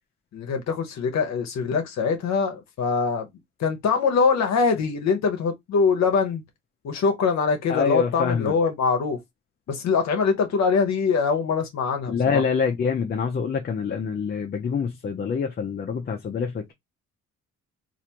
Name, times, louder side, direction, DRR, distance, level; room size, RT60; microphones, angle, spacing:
voice 1, 0.3-3.3 3.6-6.4 6.8-9.2 9.7-12.4, left 5 dB, 65° left, 0.8 m, -23 dB
voice 2, 7.7-8.5 12.1-16.7, left 6 dB, 35° left, 0.5 m, -25 dB
3.2 x 2.5 x 2.8 m
cardioid pair, 90°, 30 cm